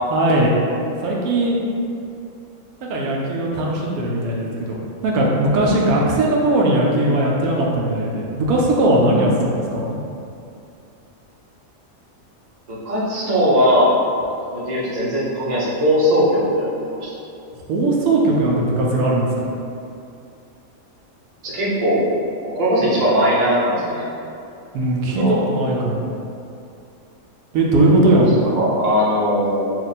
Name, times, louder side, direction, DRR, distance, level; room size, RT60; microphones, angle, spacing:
voice 1, 0.1-0.5 1.0-1.6 2.8-10.0 17.5-19.5 24.7-26.1 27.5-28.5, right 1 dB, 85° right, -3 dB, 1.1 m, -19 dB
voice 2, 12.7-13.9 14.5-17.1 21.4-22.1 22.4-24.0 25.2-25.4 28.5-29.7, equal, 35° right, -8 dB, 0.8 m, -19 dB
3.0 x 2.5 x 4.0 m, 2.6 s
omnidirectional pair, 1.5 m